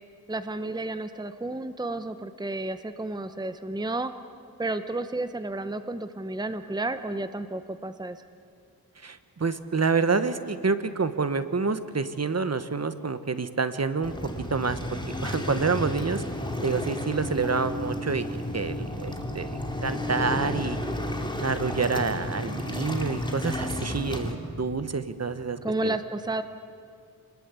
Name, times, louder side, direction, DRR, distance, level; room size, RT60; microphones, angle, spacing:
voice 1, 0.3-4.1 4.6-8.2 25.6-26.4, right 2 dB, 10° right, 10 dB, 0.9 m, -31 dB
voice 2, 9.0-14.1 14.5-16.2 16.6-20.8 21.4-26.0, right 4 dB, 45° right, 11 dB, 1.2 m, -28 dB
Waves surf, 14.0-24.3, left 1 dB, 10° left, 2.8 m, -32 dB
28.5 x 20.5 x 8.3 m, 2.3 s
wide cardioid pair, 95°, 36 cm